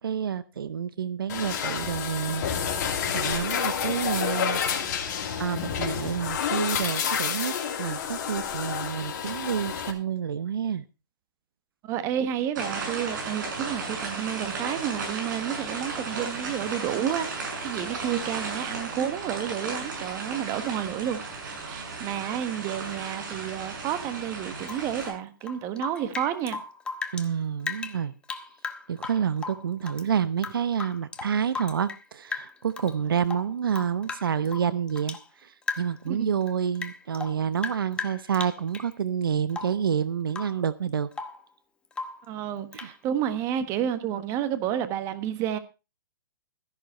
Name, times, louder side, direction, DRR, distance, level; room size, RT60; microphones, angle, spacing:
voice 1, 0.0-2.4 3.1-4.6 5.4-10.8 27.1-28.1 28.9-41.1 42.7-42.9, right 8 dB, 75° right, 0.9 m, -28 dB
sound 1, 1.3-9.9, left 7 dB, 45° left, 3.0 m, -29 dB
voice 2, 11.8-21.2 21.6-26.6 36.2-36.3 42.3-45.6, right 10 dB, 25° right, 1.4 m, -30 dB
sound 2, 12.5-25.1, right 4 dB, 55° right, 7.2 m, -35 dB
Rain / Drip, 24.6-27.3 27.6-30.1 30.4-32.0 32.3-32.9 33.2-35.3 35.6-36.1 36.4-38.9 39.5-39.9 40.3-40.6 40.9-41.4 41.9-42.3 42.7-43.0, left 4 dB, 10° left, 0.9 m, -37 dB
14.0 x 11.0 x 4.3 m
hypercardioid pair, 145°, 12 cm